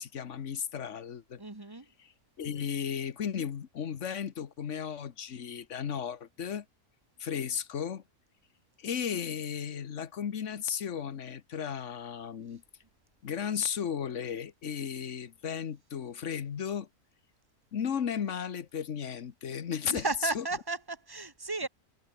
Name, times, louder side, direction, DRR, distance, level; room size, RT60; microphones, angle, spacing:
voice 1, 0.0-1.4 2.0-2.1 2.4-6.6 7.2-8.0 8.8-12.6 13.2-16.9 17.7-20.0 20.3-20.4 21.6-21.7, left 8 dB, 55° left, 1.4 m, -35 dB
voice 2, 1.4-1.9 19.9-21.7, right 3 dB, 15° right, 2.1 m, -34 dB
omnidirectional pair, 1.6 m